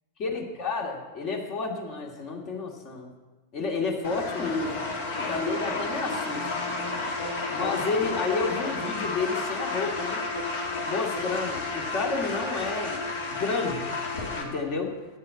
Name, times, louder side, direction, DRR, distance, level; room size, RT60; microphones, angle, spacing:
voice 1, 0.2-3.1 3.5-4.8 5.2-6.5 7.5-10.2 10.9-13.0 13.3-13.9 14.4-14.9, left 4 dB, 45° left, 2 dB, 2.3 m, -30 dB
sound 1, 4.0-14.4, left 3 dB, 60° left, 2.2 m, -31 dB
9.6 x 7.4 x 8.1 m, 1.2 s
figure-of-eight pair, 95°, 0 cm